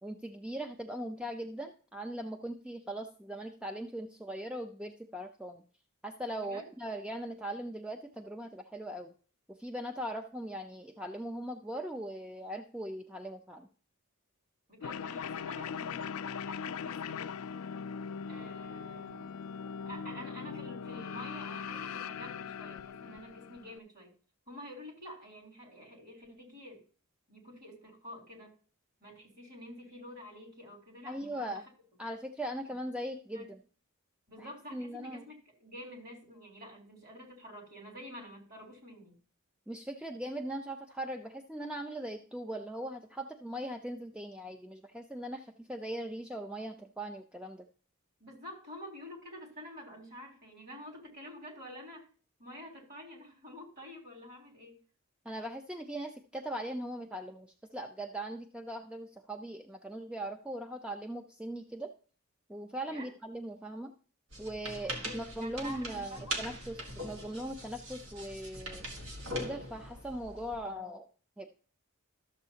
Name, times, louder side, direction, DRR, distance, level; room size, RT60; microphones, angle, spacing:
voice 1, 0.0-5.6 6.0-9.1 9.5-13.7 31.1-31.6 32.0-33.6 34.4-35.3 39.7-47.6 55.2-61.9 62.5-63.9 64.4-68.8 69.3-71.1 71.4-71.5, right 1 dB, 5° right, 4 dB, 0.4 m, -40 dB
voice 2, 14.7-17.3 18.2-19.4 19.8-24.1 24.5-26.8 27.3-28.5 29.0-31.6 32.6-32.7 33.3-33.5 34.3-39.2 48.2-52.1 52.4-54.8 62.9-63.1 65.0-66.4, left 1 dB, 45° right, -1 dB, 3.4 m, -48 dB
sound 1, 14.8-23.8, left 6 dB, 75° left, 0.3 m, -40 dB
sound 2, 64.3-70.6, right 1 dB, 70° right, 1.6 m, -41 dB
12.5 x 7.1 x 2.8 m, 0.40 s
head